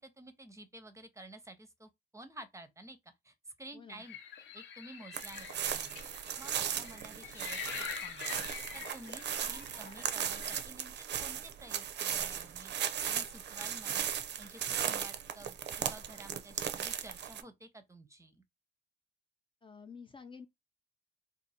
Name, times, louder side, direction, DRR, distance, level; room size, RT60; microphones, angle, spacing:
voice 1, 0.0-3.0 3.2-4.2 4.5-6.0 6.4-8.4 8.7-14.1 14.4-18.4, right 1 dB, 15° right, 0.7 m, -52 dB
voice 2, 3.7-4.0 19.6-20.5, left 5 dB, 25° left, 0.5 m, -50 dB
sound 1, 4.0-10.6, left 8 dB, 70° left, 0.8 m, -45 dB
sound 2, 5.1-17.4, right 9 dB, 60° right, 0.5 m, -37 dB
2.7 x 2.6 x 4.1 m
cardioid pair, 90°, 20 cm